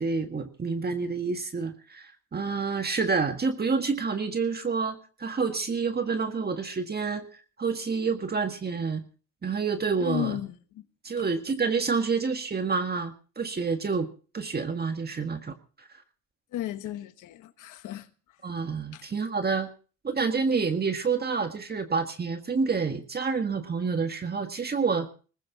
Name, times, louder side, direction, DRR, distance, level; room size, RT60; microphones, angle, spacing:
voice 1, 0.0-9.0 9.4-10.4 11.0-14.1 14.3-15.6 18.4-19.7 20.0-25.1, right 5 dB, 30° right, 1.7 m, -28 dB
voice 2, 10.0-10.8 16.5-18.1 18.9-19.0, left 13 dB, 90° left, 1.3 m, -34 dB
20.0 x 15.0 x 4.1 m
cardioid pair, 90°, 30 cm